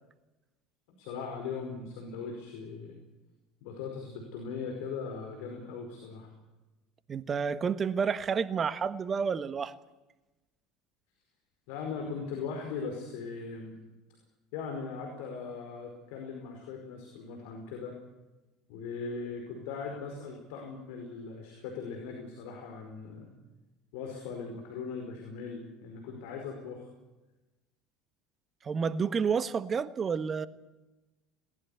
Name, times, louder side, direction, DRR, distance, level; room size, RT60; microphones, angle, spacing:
voice 1, 1.0-3.0 3.6-6.3 11.7-13.8 14.5-17.9 18.7-23.3 23.9-26.8, left 5 dB, 65° left, 4.8 m, -39 dB
voice 2, 7.1-9.7 28.6-30.5, right 6 dB, 30° right, 1.3 m, -30 dB
20.5 x 19.0 x 8.5 m
hypercardioid pair, 70°, 0 cm